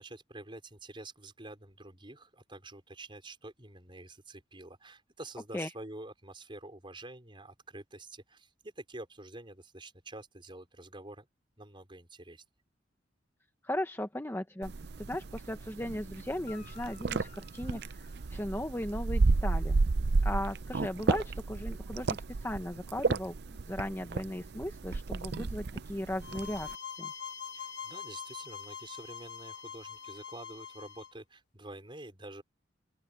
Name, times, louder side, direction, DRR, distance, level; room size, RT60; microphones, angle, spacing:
voice 1, 0.0-11.3 11.6-12.4 27.5-32.4, right 2 dB, 25° right, 5.0 m, -48 dB
voice 2, 13.6-14.7 15.0-19.8 20.2-26.7 27.0-27.1, left 1 dB, 15° left, 1.1 m, -37 dB
sound 1, 14.6-26.7, right 3 dB, 60° right, 0.6 m, -32 dB
Guitar, 16.4-19.0 22.8-22.9, left 9 dB, 40° left, 3.0 m, -57 dB
sound 2, 26.2-31.1, left 7 dB, 65° left, 2.6 m, -44 dB
open air
head